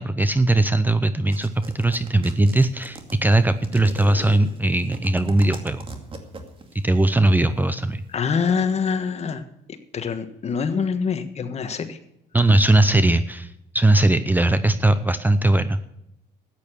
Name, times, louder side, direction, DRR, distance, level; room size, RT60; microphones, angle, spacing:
voice 1, 0.0-5.9 6.8-8.0 12.3-15.8, right 2 dB, 10° right, 12 dB, 0.6 m, -19 dB
sound 1, 1.3-6.8, right 3 dB, 30° right, 2.3 m, -38 dB
voice 2, 8.1-9.4 9.9-12.0, left 6 dB, 40° left, 9 dB, 1.5 m, -25 dB
13.5 x 9.2 x 6.3 m, 0.84 s
cardioid pair, 110°, 17 cm